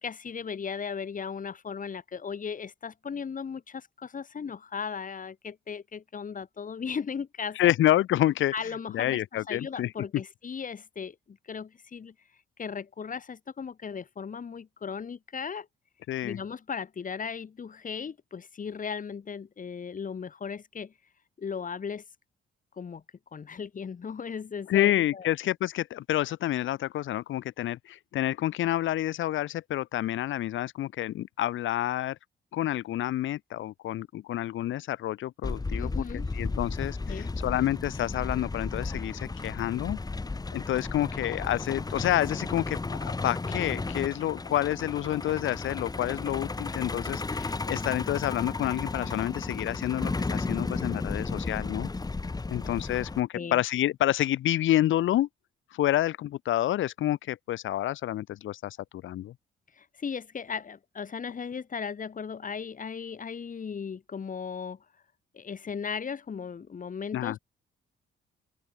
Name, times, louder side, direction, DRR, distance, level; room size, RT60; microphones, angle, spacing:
voice 1, 0.0-7.7 8.5-12.1 12.6-15.7 16.2-20.9 21.4-22.0 22.8-23.0 23.3-25.3 35.8-36.3 37.1-37.4 53.3-53.6 59.7-64.8 65.3-67.4, left 6 dB, 40° left, 4.0 m, -37 dB
voice 2, 7.6-8.5 8.9-9.9 16.1-16.4 24.7-32.2 32.5-35.9 36.4-40.0 40.5-51.9 52.5-55.3 55.7-58.8 59.0-59.3 67.1-67.4, left 13 dB, 80° left, 1.9 m, -28 dB
Truck, 35.4-53.2, left 3 dB, 20° left, 1.4 m, -34 dB
open air
cardioid pair, 90°, 20 cm